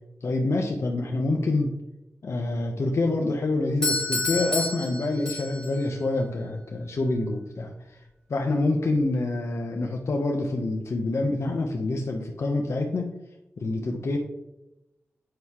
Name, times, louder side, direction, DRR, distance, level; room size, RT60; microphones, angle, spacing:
voice 1, 0.2-1.7 2.2-7.7 8.3-13.1 13.6-14.2, left 2 dB, 65° left, 1 dB, 0.7 m, -26 dB
Doorbell, 3.8-5.8, left 2 dB, 15° left, 2.2 m, -29 dB
7.7 x 4.7 x 2.9 m, 0.93 s
wide cardioid pair, 90°, 5 cm